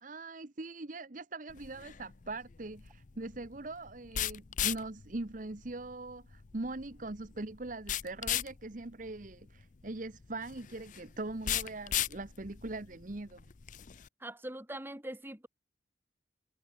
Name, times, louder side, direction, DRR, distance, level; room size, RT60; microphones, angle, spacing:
voice 1, 0.0-13.4, right 2 dB, 45° right, 1.0 m, -41 dB
sound 1, 1.5-14.1, left 11 dB, 45° left, 0.5 m, -38 dB
voice 2, 14.2-15.5, right 1 dB, 10° right, 2.7 m, -42 dB
head